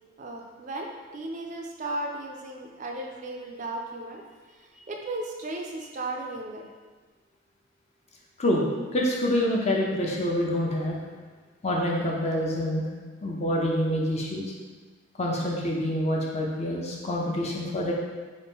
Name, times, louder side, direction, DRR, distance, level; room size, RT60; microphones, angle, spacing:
voice 1, 0.2-4.2 4.5-6.7, right 2 dB, 35° right, 1 dB, 0.3 m, -35 dB
voice 2, 8.9-11.0 11.6-12.9 13.2-14.4 15.2-17.9, left 1 dB, 30° left, -3 dB, 0.5 m, -26 dB
4.1 x 2.4 x 3.5 m, 1.4 s
head